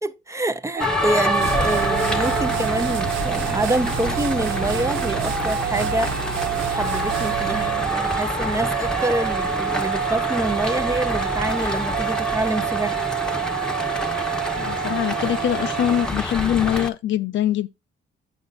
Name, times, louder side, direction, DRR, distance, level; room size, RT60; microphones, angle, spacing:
voice 1, 0.0-6.1 6.7-13.0, right 1 dB, 15° right, 0.6 m, -26 dB
sound 1, 0.8-16.9, left 1 dB, 5° left, 0.9 m, -27 dB
sound 2, 0.8-16.1, right 9 dB, 55° right, 0.9 m, -28 dB
sound 3, 1.4-7.9, right 14 dB, 85° right, 0.4 m, -32 dB
voice 2, 14.6-17.7, left 11 dB, 70° left, 0.5 m, -23 dB
7.9 x 5.3 x 3.9 m
cardioid pair, 90°, 20 cm